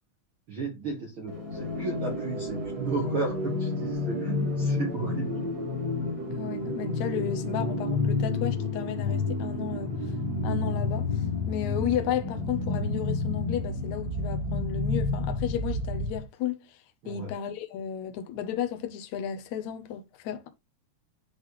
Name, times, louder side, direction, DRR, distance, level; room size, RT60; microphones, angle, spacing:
voice 1, 0.5-5.3 17.0-17.3, right 4 dB, 70° right, 1.2 m, -34 dB
sound 1, 1.3-16.2, left 3 dB, 30° right, 2.3 m, -30 dB
voice 2, 6.3-9.9 10.4-16.8 17.1-20.5, left 9 dB, 80° left, 1.6 m, -33 dB
10.0 x 4.1 x 3.1 m
omnidirectional pair, 4.5 m